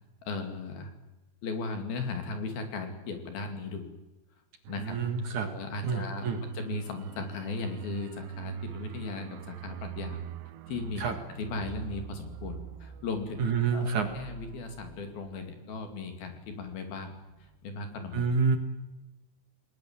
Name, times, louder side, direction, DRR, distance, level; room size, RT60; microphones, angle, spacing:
voice 1, 0.2-0.9 1.4-3.9 4.7-5.0 5.5-6.3 6.5-10.2 10.7-11.1 11.4-17.1 17.6-18.3, left 4 dB, 60° left, 6 dB, 4.1 m, -37 dB
sound 1, 4.6-17.0 17.3-17.5, right 10 dB, 75° right, 3.0 m, -43 dB
voice 2, 4.8-5.5 5.8-6.4 11.0-11.2 13.4-14.1 18.1-18.6, right 5 dB, 55° right, 6 dB, 2.6 m, -28 dB
28.5 x 20.5 x 7.4 m, 1.0 s
omnidirectional pair, 5.2 m